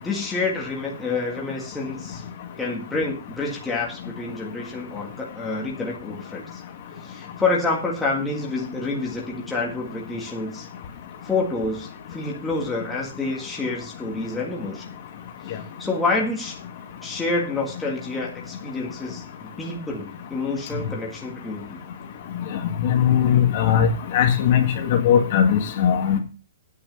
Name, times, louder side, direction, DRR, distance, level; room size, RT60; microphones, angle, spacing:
voice 1, 0.0-2.2 2.6-6.6 7.0-10.7 11.2-14.8 15.4-16.6 17.0-21.8, left 3 dB, 5° left, -3 dB, 1.8 m, -28 dB
voice 2, 22.8-23.9 24.1-26.2, left 9 dB, 40° left, 4 dB, 2.0 m, -19 dB
9.4 x 8.5 x 5.4 m, 0.35 s
hypercardioid pair, 175°, 0 cm